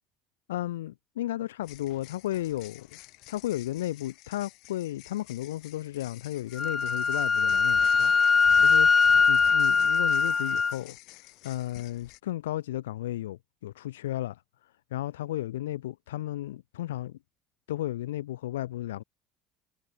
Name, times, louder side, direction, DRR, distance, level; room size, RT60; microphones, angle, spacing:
voice 1, 0.5-2.9 3.3-8.1 8.6-8.9 9.3-11.0 11.4-14.4 14.9-17.2 17.7-19.0, left 14 dB, 85° left, 0.7 m, -34 dB
sound 1, 1.6-12.2, left 22 dB, 65° left, 1.9 m, -50 dB
Wind instrument woodwind instrument, 6.6-10.7, left 5 dB, 30° left, 0.4 m, -22 dB
hypercardioid pair, 70°, 0 cm